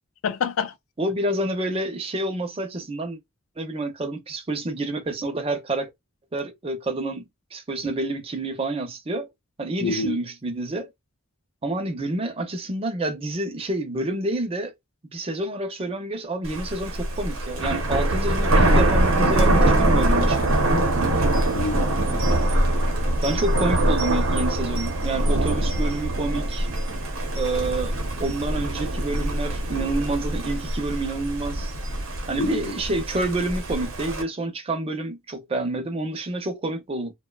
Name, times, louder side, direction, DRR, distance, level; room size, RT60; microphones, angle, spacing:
voice 1, 0.2-0.7 9.8-10.2 21.5-22.1 23.3-23.4 32.4-32.8, left 4 dB, 85° left, 0.4 m, -27 dB
voice 2, 1.0-3.2 3.6-5.9 6.3-9.3 9.6-10.9 11.6-14.7 15.1-20.5 23.2-26.7 27.3-31.7 32.3-37.1, right 2 dB, 30° right, 0.5 m, -28 dB
Thunder, 16.4-34.2, right 1 dB, 85° right, 0.8 m, -23 dB
2.6 x 2.2 x 2.2 m
head